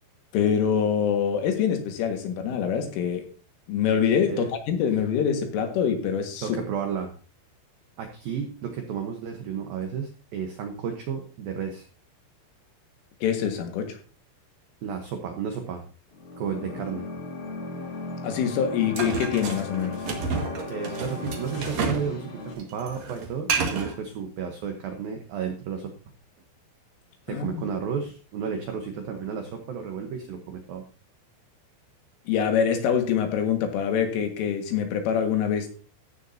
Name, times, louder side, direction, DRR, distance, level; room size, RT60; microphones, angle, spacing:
voice 1, 0.3-3.3 3.7-6.6 13.2-14.0 18.2-20.0 27.3-27.5 32.3-35.7, left 7 dB, 80° left, 5 dB, 4.2 m, -25 dB
voice 2, 6.4-7.1 8.0-11.8 14.8-15.8 16.4-17.1 20.7-25.9 27.3-30.8, right 7 dB, 80° right, 4 dB, 2.1 m, -32 dB
sound 1, 16.1-22.5, left 3 dB, 45° left, 2.7 m, -36 dB
sound 2, 19.0-22.1 22.4-24.0, right 4 dB, 55° right, 1.9 m, -30 dB
14.5 x 9.7 x 2.8 m, 0.37 s
omnidirectional pair, 5.8 m